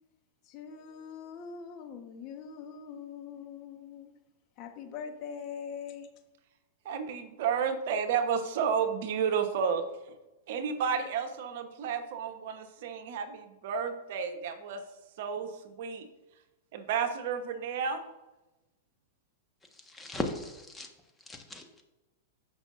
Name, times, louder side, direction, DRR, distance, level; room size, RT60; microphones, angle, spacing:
voice 1, 0.5-4.1 4.6-6.1, left 7 dB, 45° left, 5 dB, 1.2 m, -42 dB
voice 2, 6.8-9.9 10.5-14.8 15.2-16.1 16.7-18.1, right 6 dB, 60° right, 7 dB, 1.1 m, -31 dB
voice 3, 19.9-20.9 21.3-21.8, left 2 dB, 10° left, 3 dB, 1.4 m, -37 dB
15.5 x 5.6 x 2.6 m, 1.0 s
hypercardioid pair, 110°, 0 cm